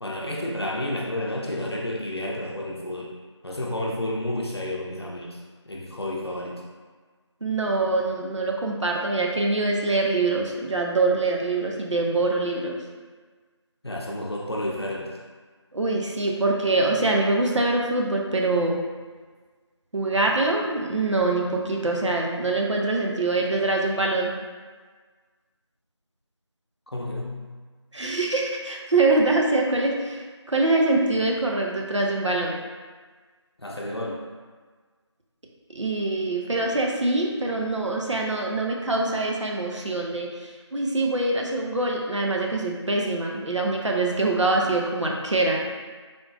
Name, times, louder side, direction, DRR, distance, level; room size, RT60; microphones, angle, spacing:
voice 1, 0.0-3.1 3.4-5.4 5.7-6.6 13.8-15.2 26.9-27.5 33.6-34.2, left 1 dB, 60° left, -2 dB, 0.6 m, -31 dB
voice 2, 7.4-12.8 15.7-18.8 19.9-24.3 27.9-32.6 35.7-45.6, right 2 dB, 80° right, -1 dB, 0.6 m, -24 dB
3.6 x 2.5 x 2.5 m, 1.4 s
figure-of-eight pair, 175°, 15 cm